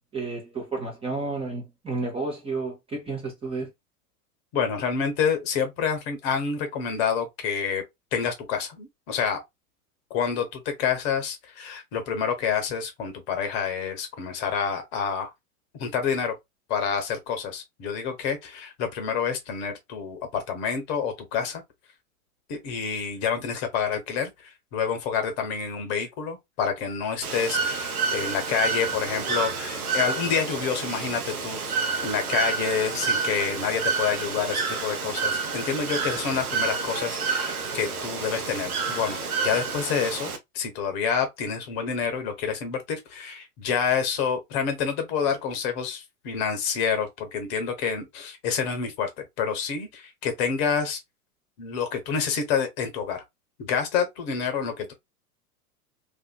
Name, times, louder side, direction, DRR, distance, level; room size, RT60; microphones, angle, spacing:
voice 1, 0.1-3.7, right 3 dB, 10° right, 0.7 m, -31 dB
voice 2, 4.5-7.8 8.1-9.4 10.1-15.3 15.8-16.3 16.7-21.6 22.5-49.1 49.4-51.0 51.6-53.2 53.6-54.9, left 6 dB, 40° left, 0.9 m, -28 dB
Bird / Water, 27.2-40.4, right 5 dB, 70° right, 0.8 m, -29 dB
2.6 x 2.5 x 2.2 m
figure-of-eight pair, 95°, 46 cm